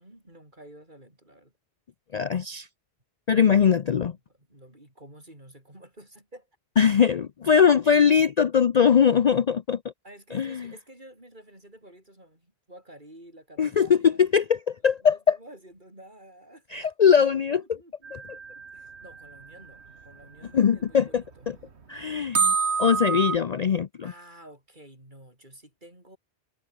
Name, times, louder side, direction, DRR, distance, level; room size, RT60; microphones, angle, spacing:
voice 1, 0.0-1.5 3.4-3.8 4.3-6.5 10.0-14.2 15.0-16.8 17.6-21.4 24.0-26.2, right 1 dB, 45° right, 8.1 m, -50 dB
voice 2, 2.1-2.7 3.3-4.1 6.8-9.8 10.3-10.7 13.6-15.4 16.7-17.8 18.1-18.2 20.5-21.6 21.9-22.5 22.8-24.1, left 7 dB, 45° left, 0.6 m, -21 dB
sound 1, 18.0-19.7 20.5-20.6 21.2-21.3 21.4-21.5 22.3-23.4, right 5 dB, 85° right, 2.0 m, -27 dB
omnidirectional pair, 1.1 m